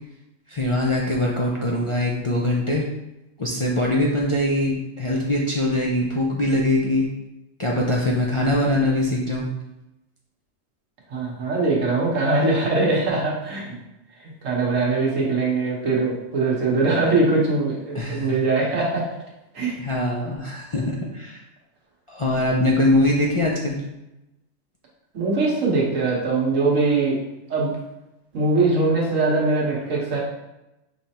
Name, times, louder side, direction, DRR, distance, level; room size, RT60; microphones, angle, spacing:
voice 1, 0.5-2.9 3.4-7.1 7.6-9.5 17.9-18.4 19.8-21.4 22.1-23.8, left 1 dB, 50° left, -4 dB, 0.3 m, -22 dB
voice 2, 11.1-13.8 14.2-19.0 19.5-19.8 25.1-27.2 27.5-27.7 28.3-30.2, right 3 dB, 80° right, -3 dB, 1.6 m, -22 dB
5.6 x 3.3 x 2.9 m, 0.93 s
omnidirectional pair, 1.3 m